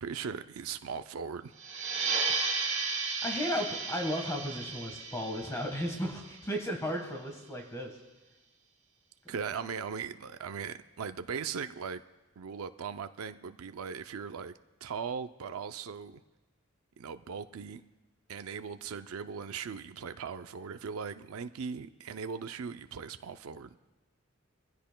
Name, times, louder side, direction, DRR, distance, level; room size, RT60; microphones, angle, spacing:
voice 1, 0.0-1.5 9.3-12.0 12.4-14.5 14.8-16.2 17.0-17.8 18.3-23.7, right 6 dB, 85° right, 10 dB, 0.5 m, -39 dB
sound 1, 1.6-6.8, right 4 dB, 35° right, 3.0 m, -34 dB
voice 2, 2.9-7.9 9.2-9.3, equal, 15° left, 2 dB, 1.4 m, -35 dB
22.5 x 16.0 x 2.2 m, 1.2 s
head